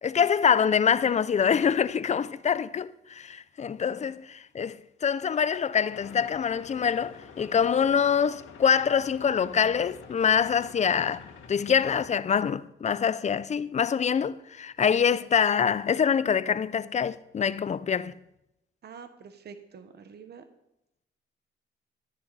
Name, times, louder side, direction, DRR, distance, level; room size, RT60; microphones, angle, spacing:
voice 1, 0.0-11.2 11.5-18.1, left 7 dB, 35° left, 0.6 m, -25 dB
sound 1, 5.9-12.1, left 6 dB, 85° left, 2.2 m, -48 dB
voice 2, 18.8-20.4, right 6 dB, 55° right, 1.3 m, -46 dB
13.0 x 9.9 x 4.1 m
cardioid pair, 90°, 20 cm